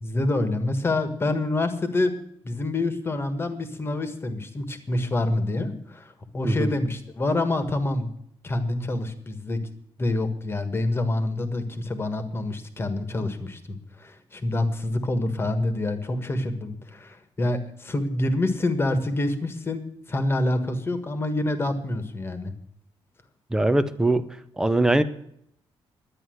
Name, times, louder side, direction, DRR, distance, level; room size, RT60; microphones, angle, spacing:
voice 1, 0.0-2.1 2.4-8.1 8.4-9.6 10.0-22.5, left 2 dB, 25° left, 9 dB, 1.5 m, -27 dB
voice 2, 23.5-24.3 24.6-25.0, right 2 dB, 5° right, 10 dB, 0.7 m, -21 dB
11.5 x 9.7 x 7.8 m, 0.71 s
wide cardioid pair, 160°, 10 cm